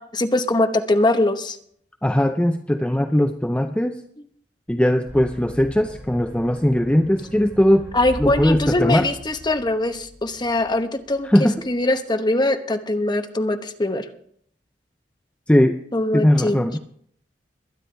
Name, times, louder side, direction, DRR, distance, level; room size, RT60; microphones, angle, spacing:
voice 1, 0.1-1.6 7.9-11.3 11.7-14.0 15.9-16.6, left 2 dB, 25° left, 7 dB, 1.0 m, -22 dB
voice 2, 2.0-4.0 4.7-7.8 8.2-9.1 11.2-11.6 15.5-15.8 16.1-16.8, equal, 5° left, 6 dB, 0.5 m, -19 dB
sound 1, 5.1-11.8, left 1 dB, 15° right, 3.0 m, -39 dB
22.0 x 9.9 x 3.4 m, 0.65 s
head